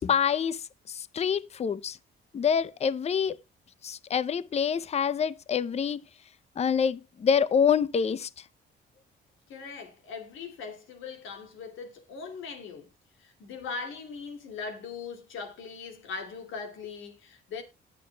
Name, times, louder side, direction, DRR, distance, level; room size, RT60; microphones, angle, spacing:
voice 1, 0.0-2.0 2.3-3.4 3.8-6.0 6.6-8.3, left 7 dB, 35° left, 0.5 m, -26 dB
voice 2, 9.5-12.9 13.2-17.6, left 5 dB, 80° left, 2.5 m, -40 dB
18.5 x 6.7 x 2.2 m
cardioid pair, 90°, 20 cm